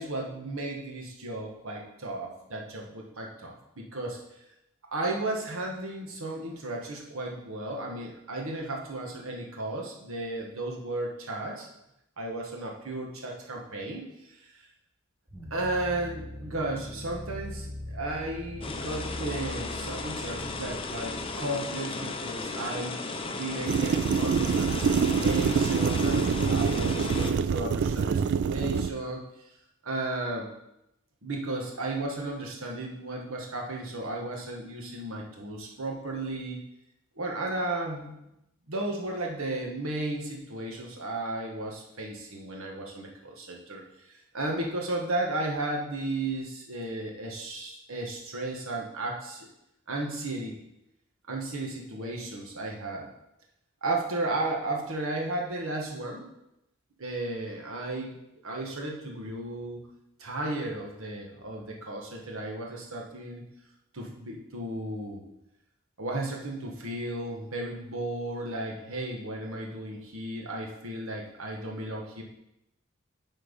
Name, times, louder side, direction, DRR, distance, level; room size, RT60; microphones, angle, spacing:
voice 1, 0.0-4.2 4.9-11.7 12.2-14.6 15.5-29.2 29.8-30.5 31.2-36.6 37.2-38.1 38.7-43.8 44.1-49.5 49.9-50.6 51.3-53.1 53.8-56.3 57.0-58.2 58.4-59.8 60.2-63.4 63.9-65.2 66.0-72.2, right 2 dB, 90° right, 0 dB, 1.4 m, -34 dB
sound 1, 15.3-22.4, left 1 dB, 15° right, 0.9 m, -41 dB
sound 2, 18.6-27.3, left 3 dB, 25° left, 0.6 m, -35 dB
sound 3, 23.7-28.9, right 6 dB, 55° right, 0.3 m, -25 dB
8.1 x 4.5 x 5.3 m, 0.85 s
head